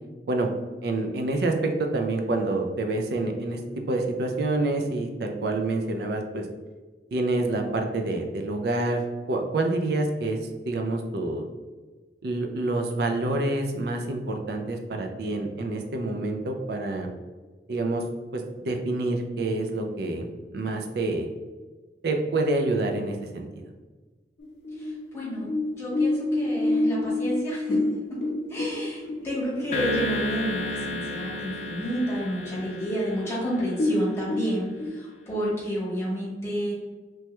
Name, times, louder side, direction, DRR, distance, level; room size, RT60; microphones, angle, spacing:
voice 1, 0.8-6.5 7.1-10.4 10.7-11.4 12.2-17.1 17.7-18.0 18.3-20.3 20.5-21.3 22.0-23.6, right 2 dB, 60° right, 4 dB, 0.4 m, -27 dB
sound 1, 24.4-30.2 30.6-30.7 31.1-31.6 32.0-32.1 32.8-32.9 33.2-33.3 33.7-34.9, left 2 dB, 80° left, 0.6 m, -27 dB
voice 2, 24.8-25.5 25.7-27.8 28.1-28.2 28.5-36.7, equal, 15° left, -6 dB, 0.9 m, -30 dB
sound 2, 29.7-34.2, left 2 dB, 40° left, 0.3 m, -32 dB
3.1 x 2.2 x 2.9 m, 1.3 s
head